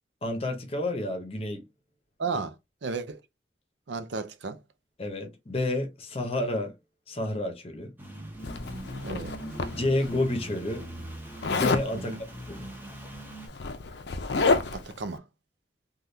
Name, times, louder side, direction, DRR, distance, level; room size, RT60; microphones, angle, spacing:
voice 1, 0.2-1.6 5.0-6.7 7.1-7.9 9.7-10.9 11.5-12.2 12.5-12.7, left 1 dB, 30° left, 0.7 m, -30 dB
voice 2, 2.2-2.5 2.8-3.2 3.9-4.6 9.0-9.4 11.9-12.2 14.7-15.2, right 4 dB, 75° right, 0.5 m, -33 dB
sound 1, 8.0-13.5, right 1 dB, 10° right, 0.6 m, -41 dB
Zipper (clothing), 8.4-10.1 11.4-11.9 13.0-13.1 13.4-14.9, left 3 dB, 65° left, 0.5 m, -28 dB
3.4 x 2.3 x 2.7 m
head